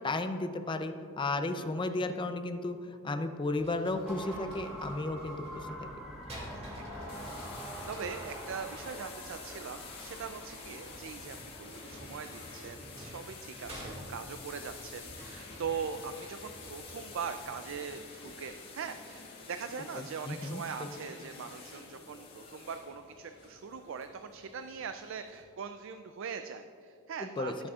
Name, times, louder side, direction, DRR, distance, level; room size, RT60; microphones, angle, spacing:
voice 1, 0.0-2.8 3.0-5.4 5.8-5.9 20.3-20.6 27.4-27.7, left 2 dB, 25° left, 8 dB, 0.5 m, -33 dB
voice 2, 1.5-1.9 6.5-27.7, right 6 dB, 65° right, 8 dB, 0.4 m, -41 dB
sound 1, 3.5-8.4 10.1-18.7, equal, 30° right, 2.2 m, -50 dB
sound 2, 4.0-12.7, equal, ahead, 1.7 m, -46 dB
sound 3, 7.1-25.4, left 4 dB, 50° left, 1.7 m, -49 dB
18.0 x 7.6 x 2.4 m, 2.5 s
head